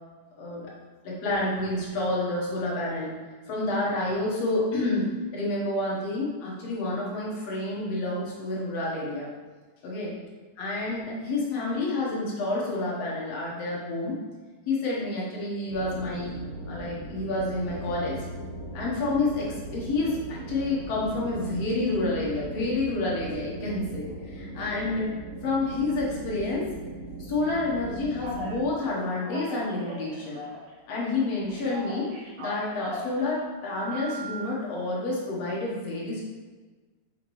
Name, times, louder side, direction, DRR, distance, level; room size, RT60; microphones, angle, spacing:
voice 1, 0.4-0.7 1.0-3.1 3.5-9.3 9.8-10.1 10.6-14.2 14.7-16.3 16.7-18.2 18.7-25.1 25.4-26.7 27.2-30.4 30.9-32.1 32.4-36.2, left 2 dB, 60° left, -4 dB, 1.9 m, -29 dB
sound 1, 15.7-28.6, right 2 dB, 50° right, 1.2 m, -39 dB
Telephone, 28.2-28.6 29.1-30.7 31.0-33.2 33.7-34.4, right 2 dB, 75° right, 3.0 m, -39 dB
6.4 x 5.7 x 3.1 m, 1.3 s
omnidirectional pair, 3.8 m